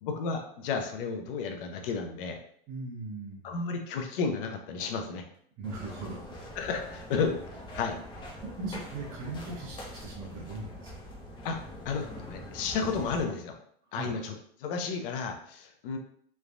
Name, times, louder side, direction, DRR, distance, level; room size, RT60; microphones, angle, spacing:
voice 1, 0.0-2.4 3.4-5.2 6.6-7.4 7.7-8.0 11.4-11.6 11.8-12.0 12.3-13.6 13.9-16.0, left 5 dB, 65° left, 4 dB, 0.6 m, -32 dB
voice 2, 2.7-3.6 5.6-6.4 8.4-10.9 13.9-14.1, right 3 dB, 30° right, -4 dB, 0.8 m, -39 dB
sound 1, 5.6-13.2, left 1 dB, 15° left, 0.5 m, -44 dB
3.2 x 2.1 x 2.5 m, 0.63 s
supercardioid pair, 145°, 30 cm